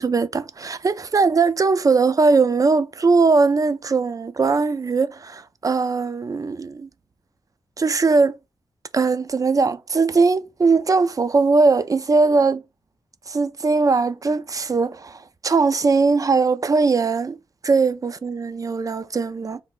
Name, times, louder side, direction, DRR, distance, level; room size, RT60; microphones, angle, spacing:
voice 1, 0.0-6.9 7.8-8.3 8.9-12.6 13.3-17.4 17.6-19.6, right 4 dB, 35° right, 0.3 m, -20 dB
3.2 x 2.5 x 3.4 m
cardioid pair, 65°, 10 cm